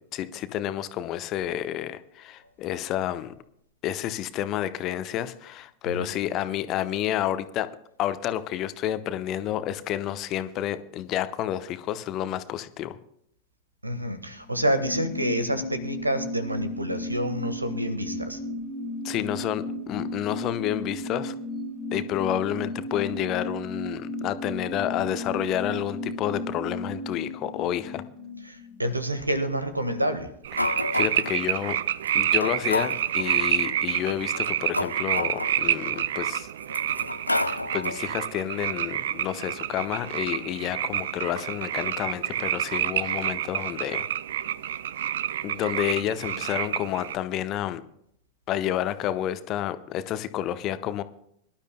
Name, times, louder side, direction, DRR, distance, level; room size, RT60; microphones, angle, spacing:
voice 1, 0.1-3.3 3.8-7.7 8.0-13.0 19.0-21.3 21.9-28.0 30.6-31.8 32.1-36.5 37.4-44.1 45.4-47.8 48.5-51.0, left 12 dB, 35° left, 12 dB, 0.9 m, -30 dB
voice 2, 13.8-18.4 28.4-30.3, right 1 dB, 85° right, 11 dB, 1.4 m, -28 dB
sound 1, 14.3-29.4 29.7-29.8, left 1 dB, 40° right, 5.2 m, -35 dB
sound 2, 30.4-47.2, right 11 dB, 60° right, 0.5 m, -28 dB
sound 3, 30.6-31.4 32.0-32.1 32.4-33.3 34.2-36.0 36.6-38.1, left 2 dB, 85° left, 0.5 m, -30 dB
24.0 x 12.0 x 2.2 m, 0.71 s
figure-of-eight pair, 90°, 0 cm